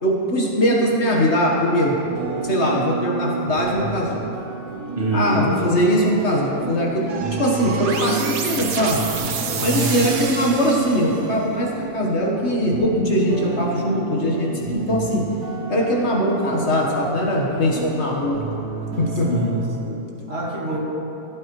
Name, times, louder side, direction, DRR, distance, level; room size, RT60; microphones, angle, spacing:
voice 1, 0.0-2.0 2.4-4.2 5.1-7.1 7.4-9.0 9.6-15.2 15.7-18.6 19.0-19.3, equal, 50° left, -2 dB, 1.5 m, -21 dB
sound 1, 2.1-19.8, right 4 dB, 85° right, 1.5 m, -31 dB
voice 2, 4.9-5.5 9.5-10.3 19.1-20.8, right 1 dB, 45° right, -4 dB, 1.9 m, -25 dB
sound 2, 7.1-11.4, right 5 dB, 70° right, 1.2 m, -29 dB
15.5 x 8.7 x 3.1 m, 3.0 s
omnidirectional pair, 1.6 m